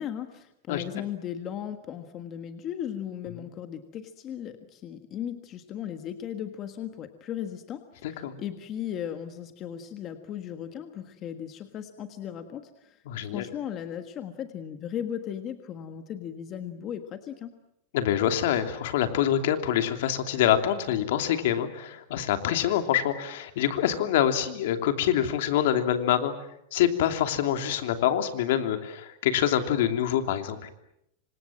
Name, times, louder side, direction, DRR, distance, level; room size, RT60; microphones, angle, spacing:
voice 1, 0.0-7.8 8.1-13.0 13.3-17.5, left 9 dB, 25° left, 8 dB, 1.5 m, -36 dB
voice 2, 8.0-8.4 13.1-13.5 17.9-26.3 26.7-30.7, left 10 dB, 65° left, 7 dB, 3.0 m, -25 dB
28.0 x 26.0 x 7.6 m, 0.78 s
supercardioid pair, 165°, 0 cm